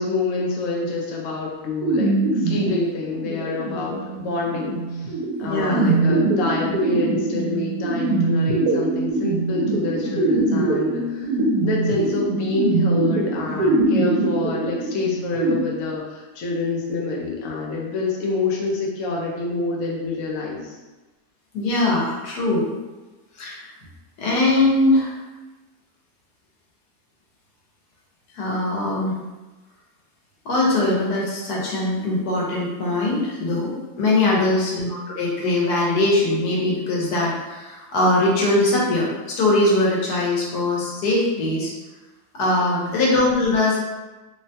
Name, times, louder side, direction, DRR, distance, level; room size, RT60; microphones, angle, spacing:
voice 1, 0.0-20.8 34.2-34.6 42.6-43.0, left 3 dB, 65° left, -3 dB, 0.9 m, -27 dB
sound 1, 1.8-15.5, right 2 dB, 75° right, 1.1 m, -23 dB
voice 2, 5.5-5.9 21.5-22.7 23.4-23.7 24.2-25.2 28.3-29.2 30.4-41.7 42.3-43.8, left 2 dB, 85° left, -4 dB, 1.3 m, -21 dB
3.1 x 2.1 x 2.7 m, 1.2 s
omnidirectional pair, 1.7 m